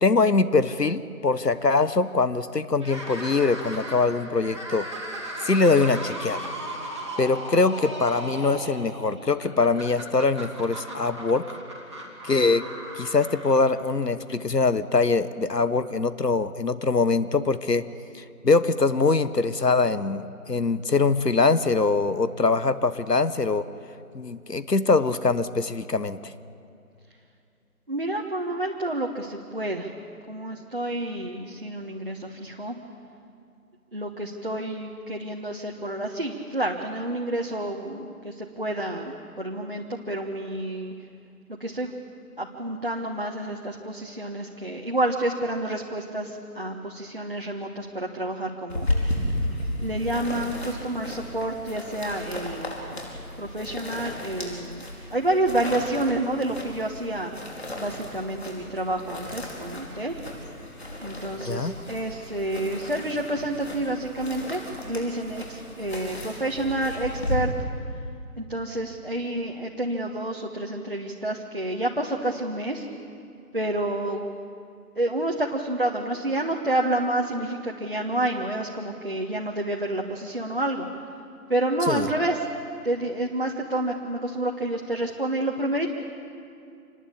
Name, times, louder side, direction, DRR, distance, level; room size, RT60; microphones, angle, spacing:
voice 1, 0.0-4.9 5.4-6.4 7.2-11.4 12.2-12.6 12.9-17.8 18.1-23.6 24.1-26.3 61.4-61.7 81.9-82.1, left 3 dB, 85° left, 13 dB, 1.3 m, -23 dB
sound 1, 2.8-14.1, right 1 dB, 20° right, 2.0 m, -37 dB
voice 2, 27.9-29.9 30.3-32.7 33.9-40.9 41.5-41.9 42.4-49.2 49.8-53.0 53.4-57.3 57.8-60.2 61.0-67.5 68.4-72.9 73.5-74.2 74.9-80.9 81.5-82.5 82.8-85.9, right 1 dB, 35° right, 0 dB, 1.4 m, -29 dB
sound 2, 48.7-67.4, left 1 dB, 40° left, 4.6 m, -34 dB
26.5 x 20.0 x 8.6 m, 2.5 s
figure-of-eight pair, 170°, 47 cm